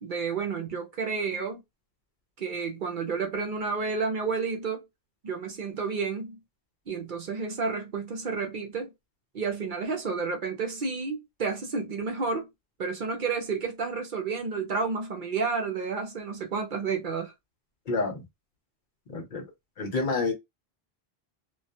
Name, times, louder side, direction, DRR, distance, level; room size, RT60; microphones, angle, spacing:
voice 1, 0.0-1.6 2.4-4.8 5.2-6.4 6.9-8.9 9.3-12.5 12.8-17.3, right 5 dB, 55° right, 0.7 m, -31 dB
voice 2, 17.9-18.2 19.1-19.5 19.8-20.3, left 3 dB, 55° left, 0.8 m, -28 dB
2.2 x 2.2 x 2.6 m
omnidirectional pair, 1.1 m